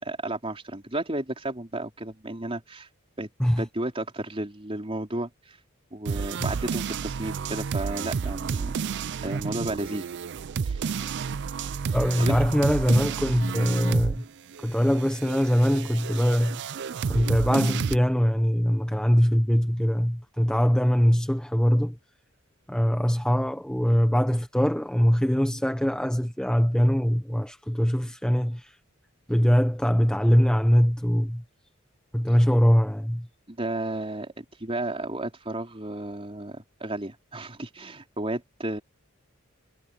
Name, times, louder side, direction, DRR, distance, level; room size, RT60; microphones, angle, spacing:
voice 1, 0.0-2.9 3.2-3.3 3.6-5.6 5.9-8.7 9.2-10.1 10.7-10.8 12.2-12.4 33.5-38.8, right 1 dB, 25° right, 4.0 m, -33 dB
sound 1, 6.1-14.3 14.5-18.0, right 6 dB, 55° right, 0.4 m, -31 dB
voice 2, 11.9-14.2 14.6-16.7 17.1-22.0 22.7-28.7 29.3-31.4 32.1-33.3, equal, 5° left, 0.8 m, -22 dB
head